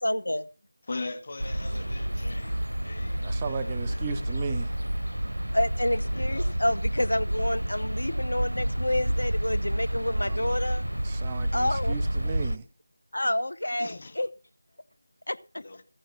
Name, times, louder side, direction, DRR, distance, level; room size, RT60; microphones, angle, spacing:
voice 1, 0.0-0.5 5.5-10.8 11.5-12.0 13.1-14.3 15.3-15.6, left 1 dB, 70° left, 0.8 m, -28 dB
voice 2, 0.9-4.3 6.0-6.6 13.8-14.2 15.6-15.8, left 3 dB, 35° left, 1.9 m, -41 dB
sound 1, 1.4-12.6, right 1 dB, 80° right, 0.6 m, -29 dB
voice 3, 3.2-4.8 10.0-10.5 11.0-12.6, right 6 dB, 15° right, 0.6 m, -36 dB
14.5 x 10.0 x 5.6 m
figure-of-eight pair, 165°, 0 cm